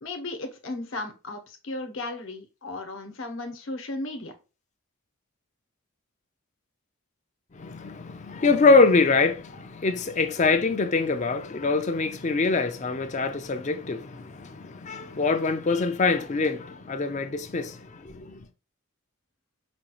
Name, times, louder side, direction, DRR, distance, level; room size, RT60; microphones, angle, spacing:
voice 1, 0.0-4.3, left 2 dB, 60° left, 1.0 m, -35 dB
voice 2, 7.5-18.5, left 3 dB, 35° left, 0.4 m, -24 dB
5.1 x 2.3 x 3.0 m
head